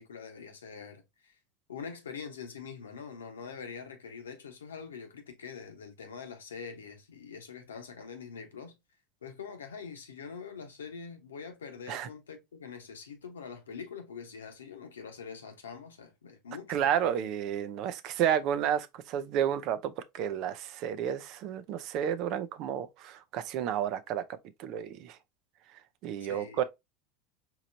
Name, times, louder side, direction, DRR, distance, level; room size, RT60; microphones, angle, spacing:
voice 1, 0.0-1.3 1.7-8.7 9.2-17.1 26.2-26.6, left 6 dB, 85° left, 1.0 m, -44 dB
voice 2, 16.7-24.2 24.6-25.2 26.0-26.6, right 9 dB, 55° right, 0.6 m, -31 dB
4.8 x 3.1 x 2.6 m
hypercardioid pair, 85°, 0 cm